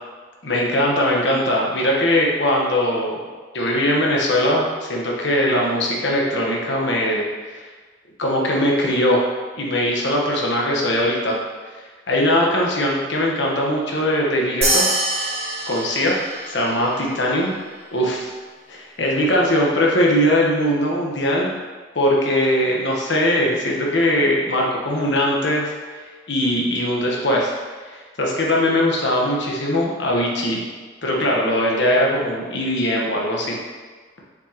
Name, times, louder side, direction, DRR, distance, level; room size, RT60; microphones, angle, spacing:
voice 1, 0.4-3.2 3.5-7.3 8.2-9.2 9.6-11.4 12.1-14.9 15.7-16.1 16.5-17.5 17.9-18.3 18.7-21.5 21.9-27.5 27.9-30.6 31.0-33.6, left 1 dB, 65° left, -2 dB, 1.2 m, -20 dB
sound 1, 14.6-17.4, right 2 dB, 35° right, 1.6 m, -24 dB
6.7 x 4.9 x 2.9 m, 1.4 s
head